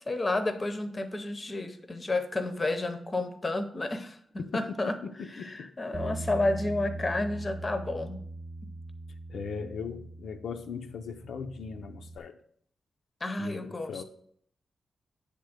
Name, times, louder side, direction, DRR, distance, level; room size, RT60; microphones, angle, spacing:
voice 1, 0.1-4.2 4.5-5.0 5.3-8.2 13.2-14.0, left 2 dB, 20° left, 0.6 m, -31 dB
voice 2, 4.4-5.7 9.3-12.4 13.4-14.0, left 5 dB, 75° left, 0.5 m, -39 dB
Bass guitar, 5.9-12.2, right 2 dB, 25° right, 0.3 m, -41 dB
8.2 x 3.5 x 6.4 m
wide cardioid pair, 180°, 0 cm